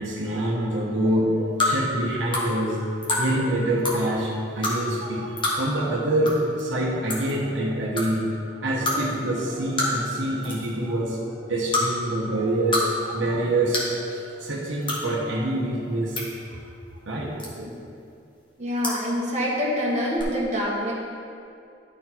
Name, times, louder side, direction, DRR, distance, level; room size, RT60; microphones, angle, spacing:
voice 1, 0.0-8.2 8.6-16.2 17.1-17.3, right 1 dB, 85° right, -4 dB, 1.1 m, -26 dB
sound 1, 1.6-1.7 2.3-2.5 3.0-3.2 3.8-4.0 4.6-4.7 5.4-5.6 6.2-6.3 6.6-6.7 7.1-7.3 8.0-8.1 8.8-9.0 9.8-10.1 10.4-10.7 11.7-11.8 12.5-12.8 13.1-13.2 13.7-13.9 14.8-15.0 15.8-16.2 17.4-17.7 18.8-19.0 20.1-20.2, left 2 dB, 25° left, 1.4 m, -25 dB
voice 2, 18.6-20.9, equal, 40° right, -6 dB, 1.7 m, -26 dB
12.0 x 4.3 x 4.4 m, 2.5 s
head